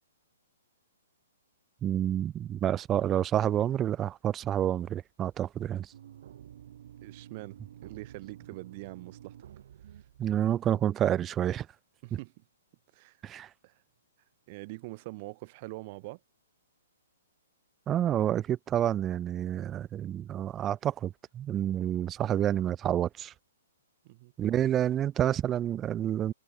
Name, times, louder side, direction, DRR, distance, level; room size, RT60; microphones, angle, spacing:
voice 1, 1.8-5.9 10.2-11.7 13.2-13.5 17.9-23.3 24.4-26.3, right 11 dB, 20° right, 0.5 m, -29 dB
sound 1, 5.9-11.1, right 10 dB, 55° right, 5.0 m, -50 dB
voice 2, 7.0-9.4 9.9-10.0 12.0-12.4 12.9-13.2 13.6-13.8 14.5-16.2 24.0-24.3, right 23 dB, 40° right, 1.8 m, -44 dB
figure-of-eight pair, 125°, 0 cm